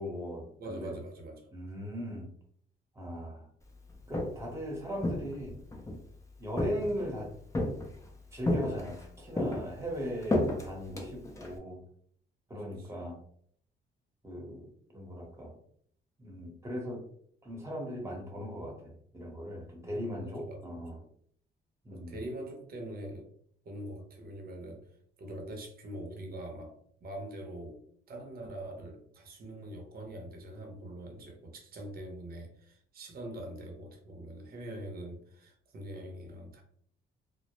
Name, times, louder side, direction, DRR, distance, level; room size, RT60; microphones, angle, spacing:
voice 1, 0.0-1.0 1.5-2.3 2.9-3.5 4.1-5.6 6.4-7.3 8.3-11.8 12.5-13.2 14.2-14.7 14.9-15.5 16.2-17.1 17.4-21.0 21.8-22.2, equal, 15° right, 0 dB, 0.9 m, -38 dB
voice 2, 0.6-1.5 12.5-12.9 19.8-21.0 21.9-23.3 23.6-24.8 25.2-36.6, right 1 dB, 50° right, 2 dB, 0.7 m, -43 dB
Walk footsteps, 3.9-4.5 5.0-6.0 6.6-7.1 7.5-8.1 8.5-9.1 9.4-11.6, left 1 dB, 15° left, 0.5 m, -32 dB
2.1 x 2.0 x 2.9 m, 0.63 s
cardioid pair, 90°, 20 cm